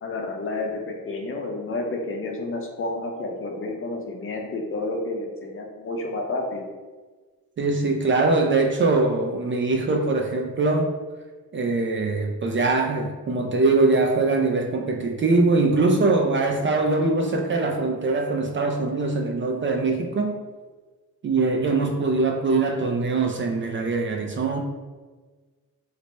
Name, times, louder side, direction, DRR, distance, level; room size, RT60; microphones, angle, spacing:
voice 1, 0.0-6.6, left 2 dB, 40° left, 1 dB, 0.6 m, -30 dB
voice 2, 7.6-10.9 11.5-20.4 21.2-24.6, right 3 dB, 35° right, 3 dB, 0.4 m, -22 dB
3.3 x 2.0 x 4.0 m, 1.3 s
cardioid pair, 100°, 35 cm